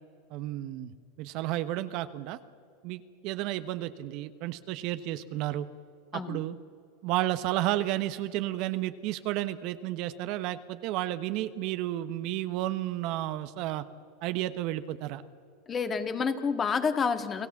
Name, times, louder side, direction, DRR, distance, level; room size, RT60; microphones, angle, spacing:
voice 1, 0.3-0.9 1.2-2.4 2.8-5.7 6.1-6.6 7.0-13.8 14.2-15.2, right 14 dB, 60° right, 11 dB, 1.1 m, -32 dB
voice 2, 15.7-17.5, left 5 dB, 30° left, 8 dB, 1.7 m, -29 dB
29.5 x 17.0 x 7.2 m, 2.4 s
hypercardioid pair, 105°, 0 cm